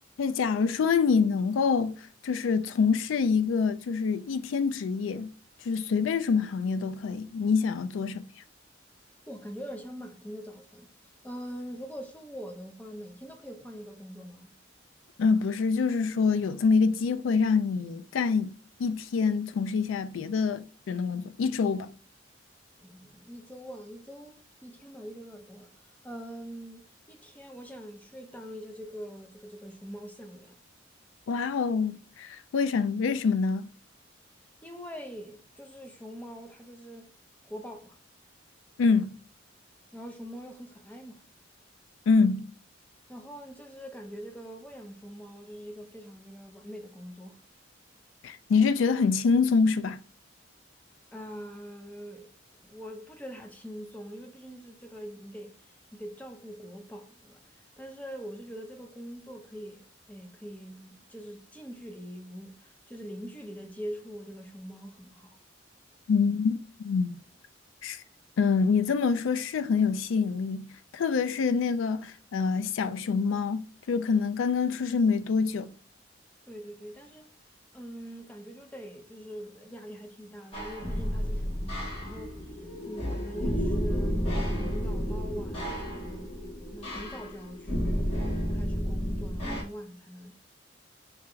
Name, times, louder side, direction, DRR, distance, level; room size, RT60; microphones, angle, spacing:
voice 1, 0.2-5.3 5.6-8.3 15.2-21.9 31.3-33.7 38.8-39.2 42.1-42.5 48.2-50.0 66.1-67.2 67.8-68.0 68.4-75.7, left 5 dB, 85° left, 0.4 m, -26 dB
voice 2, 9.3-10.9 11.2-14.5 22.8-30.6 34.6-37.1 37.4-38.0 39.9-41.2 43.1-47.4 51.1-65.4 76.4-77.3 77.7-85.7 86.0-86.4 86.7-88.1 88.5-90.4, equal, 10° left, 0.5 m, -43 dB
sound 1, 80.5-89.6, equal, 30° left, 1.5 m, -31 dB
3.2 x 2.8 x 3.7 m
head